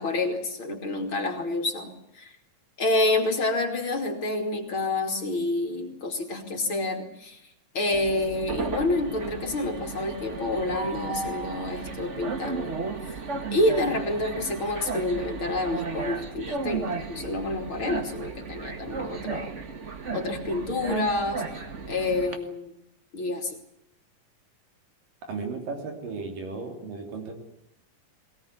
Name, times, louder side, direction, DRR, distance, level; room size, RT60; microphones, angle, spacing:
voice 1, 0.0-2.3 2.8-7.4 7.7-12.8 13.5-19.5 20.1-21.6 21.9-22.7 23.1-23.6, left 2 dB, 40° left, 4 dB, 3.2 m, -28 dB
Train, 7.9-22.3, right 4 dB, 40° right, 1.0 m, -34 dB
voice 2, 25.3-27.3, right 4 dB, 85° right, 4 dB, 5.2 m, -35 dB
22.5 x 17.5 x 9.9 m, 0.80 s
omnidirectional pair, 3.8 m